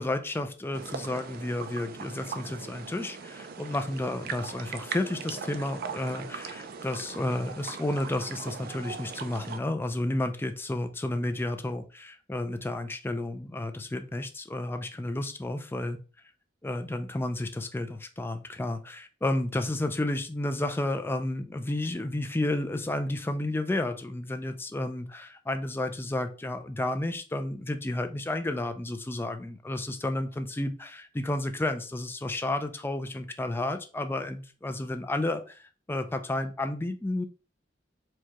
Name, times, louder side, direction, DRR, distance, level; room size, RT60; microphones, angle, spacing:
voice 1, 0.0-16.0 16.6-35.6 35.9-37.2, left 1 dB, 10° left, 8 dB, 0.4 m, -31 dB
sound 1, 0.7-9.6, right 5 dB, 55° right, 0.4 m, -40 dB
4.6 x 2.3 x 2.9 m, 0.35 s
head